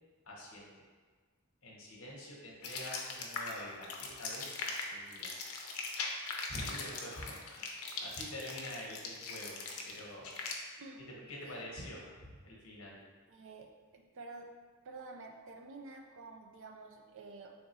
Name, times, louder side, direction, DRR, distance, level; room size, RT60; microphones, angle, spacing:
voice 1, 0.2-0.7 1.6-5.3 6.5-10.3 11.2-13.0, left 1 dB, 65° left, -3 dB, 1.0 m, -46 dB
sound 1, 2.6-10.5, left 4 dB, 80° left, 0.6 m, -40 dB
voice 2, 10.8-11.5 13.3-14.5 14.8-17.5, right 3 dB, 60° right, 3 dB, 0.4 m, -50 dB
4.0 x 3.6 x 2.9 m, 1.5 s
head